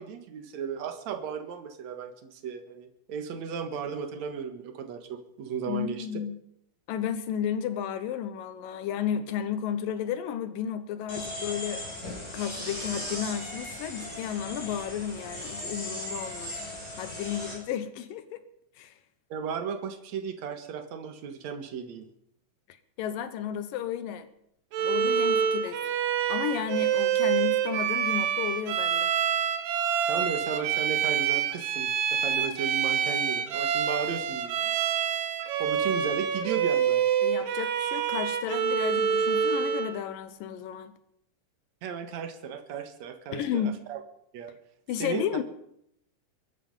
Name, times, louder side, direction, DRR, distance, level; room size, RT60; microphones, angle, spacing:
voice 1, 0.0-6.1 19.3-22.1 30.1-34.7 35.6-37.1 41.8-44.0 44.3-44.6 45.0-45.2, right 7 dB, 60° right, 7 dB, 2.6 m, -35 dB
voice 2, 5.7-6.4 6.9-16.5 17.0-18.4 18.8-18.9 23.0-24.3 24.8-25.8 26.3-29.1 37.2-40.9 43.3-43.7 44.9-45.4, left 9 dB, 90° left, 12 dB, 2.8 m, -33 dB
sound 1, 11.1-17.5, left 1 dB, 20° left, 8.2 m, -37 dB
Bowed string instrument, 24.7-40.0, right 8 dB, 80° right, 2.9 m, -27 dB
23.0 x 11.5 x 5.4 m, 0.74 s
omnidirectional pair, 3.8 m